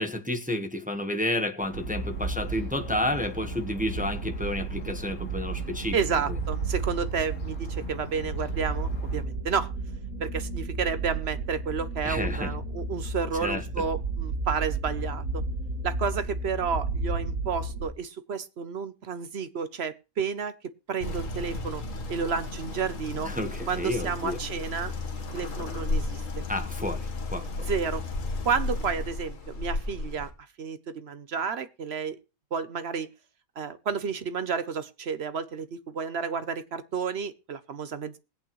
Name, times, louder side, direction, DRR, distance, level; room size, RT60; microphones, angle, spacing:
voice 1, 0.0-5.9 12.0-12.5 13.4-13.6 23.2-24.4 26.5-27.0 27.3-27.7, left 1 dB, 5° right, 1.0 m, -30 dB
sound 1, 1.6-9.3, left 3 dB, 85° left, 2.2 m, -46 dB
sound 2, 1.7-17.9, right 3 dB, 75° right, 1.9 m, -33 dB
voice 2, 5.9-9.7 10.2-15.4 15.8-20.5 20.9-21.8 22.1-23.3 23.7-24.9 25.3-26.4 27.7-28.0 28.4-30.3 30.6-32.2 32.5-33.1 33.6-38.2, right 6 dB, 55° right, 0.9 m, -31 dB
sound 3, 21.0-30.3, left 2 dB, 65° left, 1.8 m, -33 dB
20.5 x 8.5 x 3.1 m
omnidirectional pair, 1.5 m